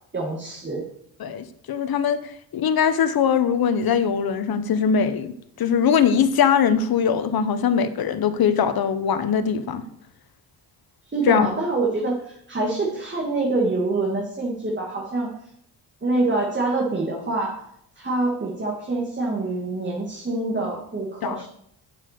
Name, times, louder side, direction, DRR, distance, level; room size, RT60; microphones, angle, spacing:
voice 1, 0.1-0.9 11.1-15.3 16.0-17.6 18.0-21.5, right 2 dB, 25° right, -2 dB, 2.2 m, -25 dB
voice 2, 1.2-9.8 11.3-11.5 21.2-21.4, left 7 dB, 60° left, 12 dB, 1.1 m, -21 dB
7.6 x 7.3 x 6.7 m, 0.72 s
cardioid pair, 70°, 41 cm